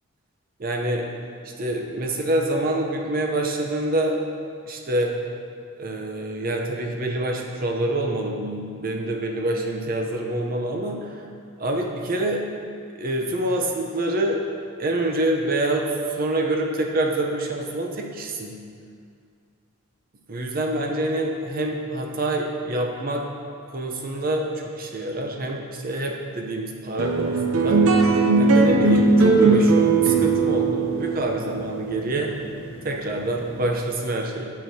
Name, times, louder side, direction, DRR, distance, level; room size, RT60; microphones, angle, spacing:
voice 1, 0.6-1.1 1.6-4.2 4.7-5.1 5.8-11.1 11.6-12.4 13.0-14.4 14.8-15.9 16.2-18.6 20.3-23.3 23.7-27.8 28.4-32.3 32.8-34.5, right 1 dB, 45° right, 1 dB, 0.7 m, -26 dB
sound 1, 27.0-33.6, right 3 dB, 80° right, 0.6 m, -19 dB
9.5 x 6.6 x 2.8 m, 2.2 s
head